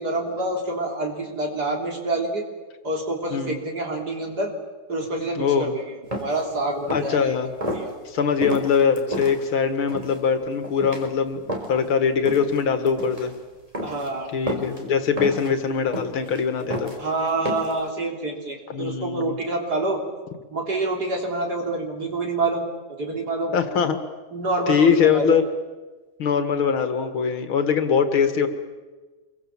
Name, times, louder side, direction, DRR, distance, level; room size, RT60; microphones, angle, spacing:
voice 1, 0.0-2.4 2.8-4.5 4.9-7.3 7.6-7.9 13.8-14.3 17.0-20.0 20.5-22.7 23.0-23.5 24.3-25.3, right 2 dB, 50° right, 1 dB, 4.1 m, -27 dB
voice 2, 5.4-5.7 6.9-7.5 8.1-13.3 14.3-16.9 18.7-19.4 23.5-24.0 24.7-25.4 26.2-28.5, left 6 dB, 80° left, 8 dB, 2.7 m, -22 dB
sound 1, 6.1-6.4 6.8-7.2 7.6-7.8 8.4-9.3 9.9-10.2 10.6-11.0 11.5-11.9 12.3-12.6 12.9-13.3 13.7-14.1 14.5-14.8 15.2-15.5 15.9-16.4 16.7-17.0 17.5-17.8, equal, 15° right, 3.9 m, -30 dB
26.5 x 23.5 x 7.4 m, 1.3 s
omnidirectional pair, 2.2 m